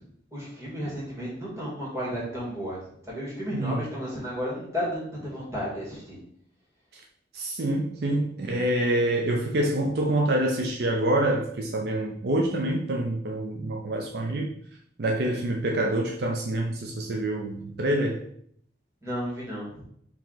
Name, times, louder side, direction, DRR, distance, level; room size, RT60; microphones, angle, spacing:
voice 1, 0.3-6.2 19.0-19.9, equal, 15° right, -6 dB, 1.8 m, -33 dB
voice 2, 3.5-3.9 6.9-7.0 7.3-14.5 15.0-18.2, right 1 dB, 60° right, 1 dB, 0.5 m, -26 dB
4.6 x 2.9 x 3.9 m, 0.66 s
head